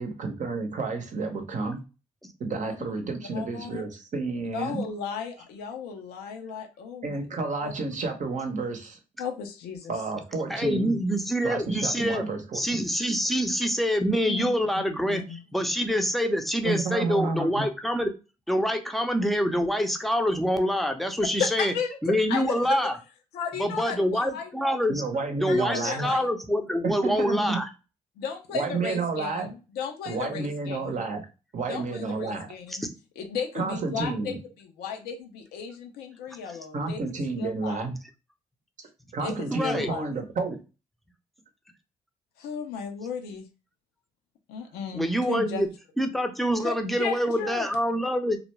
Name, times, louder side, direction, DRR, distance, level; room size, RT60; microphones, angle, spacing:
voice 1, 0.0-1.8 2.4-4.8 7.0-9.0 9.9-11.0 11.4-12.8 16.6-17.7 24.9-26.1 26.8-27.6 28.5-29.5 30.1-31.2 31.5-32.5 33.5-34.4 36.7-38.0 39.1-40.6, right 3 dB, 55° right, 0.7 m, -30 dB
voice 2, 3.3-3.8 4.5-7.2 7.6-7.7 9.2-9.9 14.3-14.5 15.1-15.4 21.4-22.0 22.3-22.8 23.3-24.8 25.5-26.3 28.2-31.1 31.6-32.8 33.2-37.0 37.4-37.8 39.2-40.1 42.4-43.5 44.5-45.6 46.6-47.7, left 6 dB, 85° left, 0.6 m, -35 dB
voice 3, 10.5-12.2 12.5-18.1 18.5-21.7 22.0-22.9 23.6-25.0 25.4-27.6 32.8-32.9 39.5-39.9 44.9-45.7 46.0-48.4, equal, ahead, 0.6 m, -26 dB
2.3 x 2.1 x 3.1 m
supercardioid pair, 55°, 16 cm